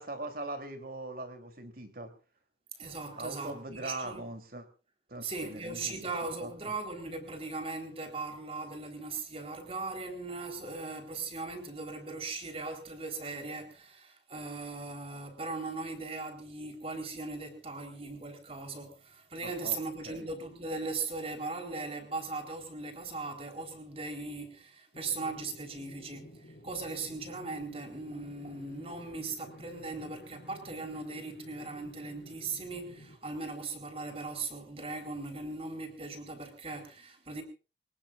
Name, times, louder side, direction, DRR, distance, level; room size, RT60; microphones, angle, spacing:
voice 1, 0.0-2.1 3.2-4.6 5.1-6.1 6.4-6.5 19.4-19.8 20.0-20.3, right 2 dB, 55° right, 3.2 m, -41 dB
voice 2, 2.8-4.3 5.2-37.4, right 3 dB, 35° right, 3.9 m, -39 dB
sound 1, 24.9-33.2, equal, 60° left, 5.6 m, -52 dB
25.0 x 19.5 x 2.5 m
head